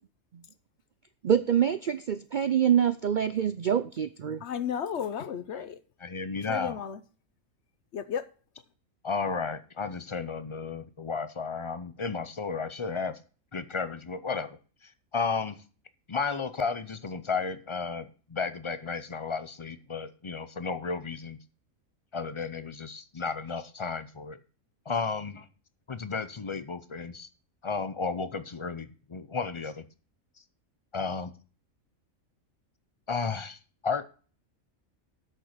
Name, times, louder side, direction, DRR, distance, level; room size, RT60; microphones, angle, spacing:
voice 1, 1.2-4.4, right 9 dB, 75° right, 0.4 m, -25 dB
voice 2, 4.4-5.8 6.5-7.0 7.9-8.3, left 8 dB, 60° left, 0.9 m, -33 dB
voice 3, 6.0-6.8 9.0-13.2 13.5-14.6 14.8-15.6 16.1-21.4 22.1-24.4 24.9-25.5 25.9-27.3 27.6-29.8 30.9-31.3 33.1-34.1, left 4 dB, 40° left, 0.4 m, -33 dB
8.2 x 6.6 x 6.6 m
omnidirectional pair, 1.4 m